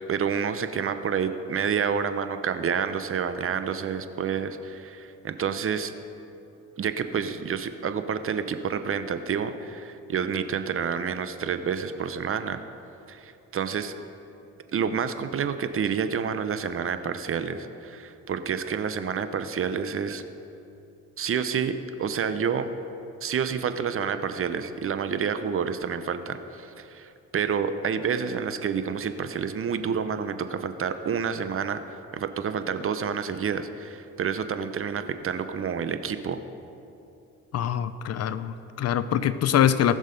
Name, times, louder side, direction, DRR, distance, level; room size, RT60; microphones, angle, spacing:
voice 1, 0.1-5.9 6.8-12.6 13.1-13.9 14.7-20.2 21.2-21.7 22.0-22.7 23.2-31.8 32.1-36.4, right 7 dB, 45° right, 10 dB, 0.8 m, -29 dB
voice 2, 37.5-40.0, left 10 dB, 55° left, 13 dB, 0.6 m, -24 dB
19.0 x 6.4 x 5.2 m, 2.7 s
cardioid pair, 90°, 30 cm